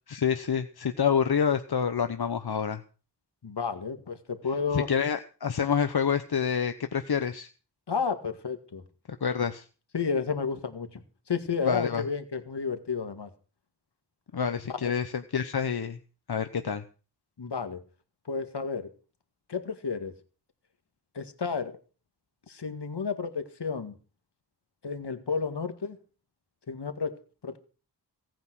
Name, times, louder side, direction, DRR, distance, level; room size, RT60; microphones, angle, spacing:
voice 1, 0.1-2.8 4.7-7.5 9.2-9.6 11.6-12.0 14.3-16.0 16.3-16.8, left 7 dB, 70° left, 9 dB, 1.0 m, -27 dB
voice 2, 3.4-4.9 7.9-8.8 9.9-11.0 11.3-13.3 14.7-14.9 17.4-17.8 18.3-18.9 19.5-20.2 21.1-21.8 22.5-23.9 24.8-26.0 26.7-27.1 27.4-27.6, left 5 dB, 85° left, 8 dB, 2.0 m, -31 dB
17.0 x 9.2 x 6.2 m, 0.37 s
wide cardioid pair, 65°, 40 cm